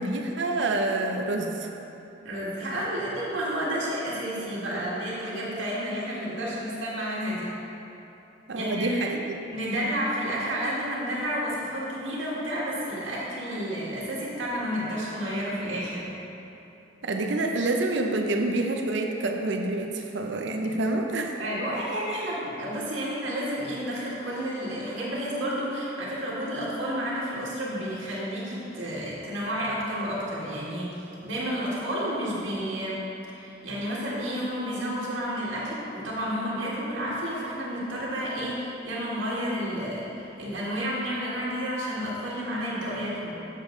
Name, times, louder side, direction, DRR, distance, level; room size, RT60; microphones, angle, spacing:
voice 1, 0.0-1.7 8.5-9.2 17.0-21.4, right 2 dB, 65° right, 3 dB, 0.6 m, -27 dB
voice 2, 2.2-7.5 8.5-9.0 9.5-16.1 21.4-30.9 31.2-33.0 33.3-43.3, equal, 85° right, -7 dB, 1.7 m, -31 dB
7.3 x 6.6 x 3.8 m, 2.9 s
head